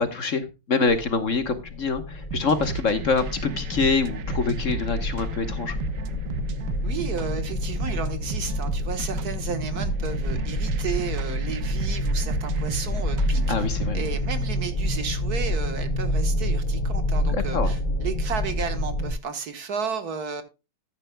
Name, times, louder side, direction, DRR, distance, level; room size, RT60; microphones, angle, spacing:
voice 1, 0.0-5.7 13.5-14.0 17.3-17.7, left 4 dB, 50° left, 1.4 m, -25 dB
sound 1, 0.9-19.1, left 1 dB, 30° left, 1.3 m, -28 dB
sound 2, 2.3-14.3, right 7 dB, 80° right, 1.5 m, -36 dB
voice 2, 6.8-13.7 13.9-20.4, right 6 dB, 60° right, 1.8 m, -33 dB
13.5 x 10.0 x 2.2 m
omnidirectional pair, 1.9 m